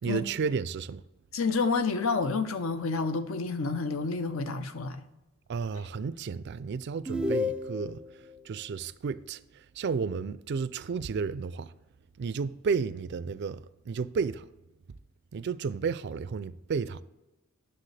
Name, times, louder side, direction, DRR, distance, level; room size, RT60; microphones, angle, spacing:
voice 1, 0.0-1.0 5.5-11.7 12.2-14.4 15.3-17.0, right 5 dB, 55° right, 0.4 m, -32 dB
voice 2, 1.3-5.0, left 4 dB, 70° left, 0.7 m, -29 dB
sound 1, 7.1-8.1, left 2 dB, 5° right, 0.5 m, -30 dB
9.8 x 6.8 x 3.3 m
head